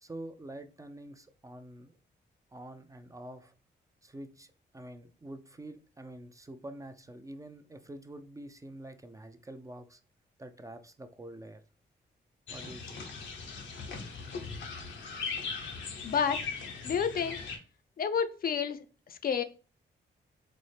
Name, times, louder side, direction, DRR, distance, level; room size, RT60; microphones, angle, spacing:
voice 1, 0.0-2.0 2.5-3.5 4.0-10.0 10.4-11.6 12.5-13.1, right 1 dB, 15° right, 0.4 m, -46 dB
sound 1, 12.5-17.6, left 4 dB, 85° left, 0.7 m, -39 dB
voice 2, 16.0-16.5 16.8-17.4 18.0-19.4, left 7 dB, 50° left, 0.4 m, -30 dB
4.1 x 2.0 x 3.2 m
cardioid pair, 75°, 19 cm